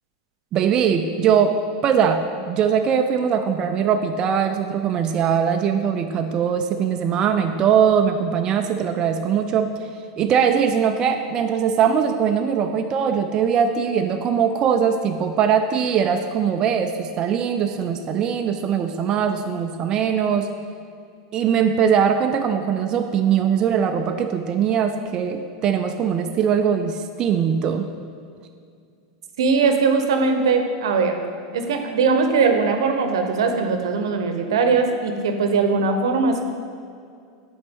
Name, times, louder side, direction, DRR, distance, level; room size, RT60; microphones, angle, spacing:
voice 1, 0.5-1.6 1.8-9.7 10.2-20.5 21.3-27.9, right 7 dB, 30° right, 5 dB, 0.3 m, -21 dB
voice 2, 29.4-31.2 31.5-36.4, right 4 dB, 85° right, 5 dB, 0.7 m, -20 dB
7.8 x 4.3 x 3.6 m, 2.3 s
supercardioid pair, 135°, 3 cm